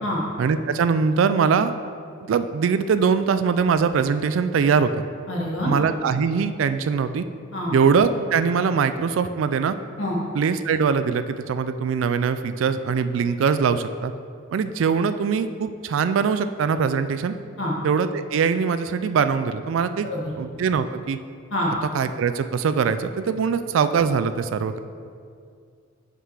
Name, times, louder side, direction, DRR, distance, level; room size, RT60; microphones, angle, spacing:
voice 1, 0.4-1.7 2.3-4.9 5.6-7.2 7.7-9.7 10.3-14.1 14.5-17.3 17.8-20.1 20.4-21.2 21.9-24.8, right 6 dB, 80° right, 11 dB, 0.3 m, -22 dB
voice 2, 5.3-5.7 7.5-7.7 10.0-10.2 17.6-17.7 20.0-20.3 21.5-21.7, left 1 dB, 70° left, -3 dB, 1.6 m, -26 dB
5.7 x 5.6 x 4.8 m, 2.2 s
head